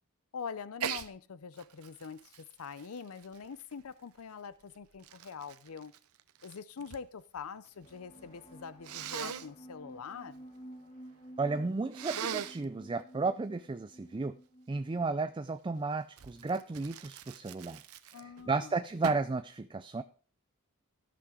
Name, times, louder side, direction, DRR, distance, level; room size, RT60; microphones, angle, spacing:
voice 1, 0.3-5.9 6.4-10.4 18.1-18.7, left 6 dB, 75° left, 0.5 m, -44 dB
Sneeze, 0.8-1.1 1.6-3.9 4.6-7.1 7.4-8.0 8.8-9.5 11.9-12.7 16.2-18.5 19.0-19.4, right 8 dB, 80° right, 0.7 m, -41 dB
sound 1, 7.8-15.3, right 1 dB, 30° left, 1.7 m, -52 dB
voice 2, 11.4-14.3 14.7-17.8 18.1-20.0, right 3 dB, 20° right, 0.4 m, -33 dB
14.0 x 6.0 x 4.9 m
head